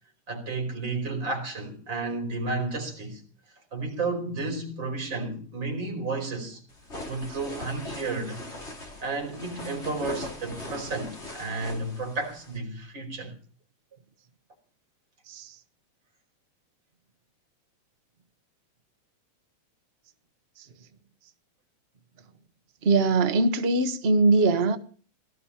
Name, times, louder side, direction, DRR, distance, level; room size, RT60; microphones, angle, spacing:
voice 1, 0.3-3.2 3.7-6.6 7.1-8.4 9.0-13.3, right 3 dB, 35° right, 5.5 m, -32 dB
sound 1, 6.7-12.6, left 2 dB, 20° left, 3.6 m, -40 dB
voice 2, 22.8-24.8, right 3 dB, 65° right, 0.6 m, -22 dB
18.5 x 13.0 x 5.8 m
omnidirectional pair, 3.4 m